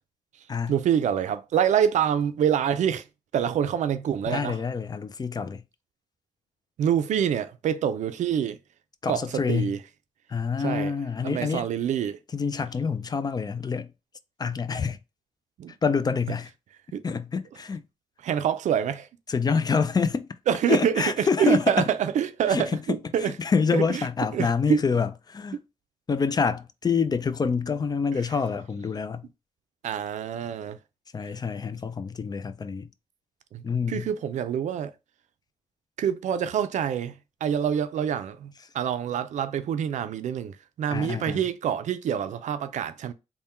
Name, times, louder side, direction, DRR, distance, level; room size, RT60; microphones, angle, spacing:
voice 1, 0.7-3.1 3.3-4.6 6.8-8.6 9.1-9.8 10.6-10.9 11.2-12.2 15.6-15.7 16.9-17.0 18.2-19.1 20.5-23.3 23.7-24.0 24.3-24.8 28.1-28.2 29.8-30.8 33.5-34.9 36.0-43.1, right 8 dB, 85° right, 0.4 m, -26 dB
voice 2, 4.3-5.6 9.0-9.7 10.3-11.7 12.3-13.9 14.4-15.0 15.8-16.5 17.0-17.8 19.3-20.3 20.7-21.9 22.5-22.8 23.2-25.6 26.1-29.3 31.1-32.9 33.6-34.1 40.9-41.4, left 5 dB, 35° left, 0.4 m, -27 dB
3.5 x 2.2 x 4.2 m
cardioid pair, 90°, 12 cm